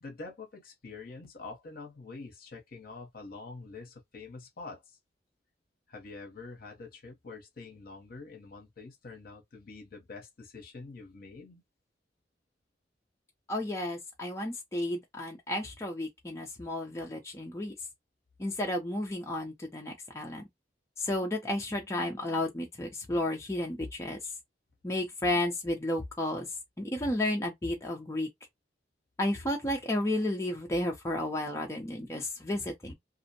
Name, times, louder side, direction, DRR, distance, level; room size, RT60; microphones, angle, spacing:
voice 1, 0.0-5.0 5.9-11.6, left 3 dB, 55° left, 0.8 m, -46 dB
voice 2, 13.5-17.7 18.4-20.4 21.0-24.2 24.8-26.5 26.8-28.3 29.2-32.9, left 1 dB, 15° left, 0.5 m, -32 dB
2.5 x 2.0 x 2.6 m
head